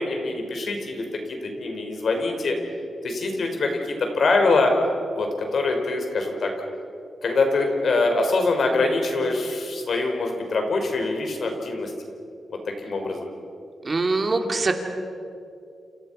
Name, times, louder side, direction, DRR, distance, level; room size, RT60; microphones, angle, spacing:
voice 1, 0.0-2.6 3.0-4.7 5.1-6.5 7.2-11.9 12.8-13.3, left 3 dB, 60° left, 4 dB, 4.9 m, -24 dB
voice 2, 13.8-14.7, right 3 dB, 35° right, 4 dB, 2.8 m, -23 dB
29.5 x 28.5 x 5.7 m, 2.5 s
cardioid pair, 105°, 0 cm